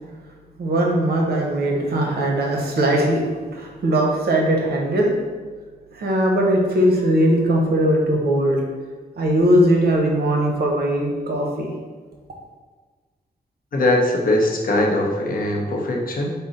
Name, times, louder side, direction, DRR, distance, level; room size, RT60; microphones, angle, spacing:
voice 1, 0.6-3.2 3.5-5.1 6.0-8.6 9.2-11.7, right 1 dB, 75° right, 0 dB, 0.7 m, -19 dB
voice 2, 13.7-16.3, left 1 dB, 60° left, 0 dB, 0.6 m, -21 dB
3.6 x 2.0 x 3.9 m, 1.5 s
wide cardioid pair, 125°, 17 cm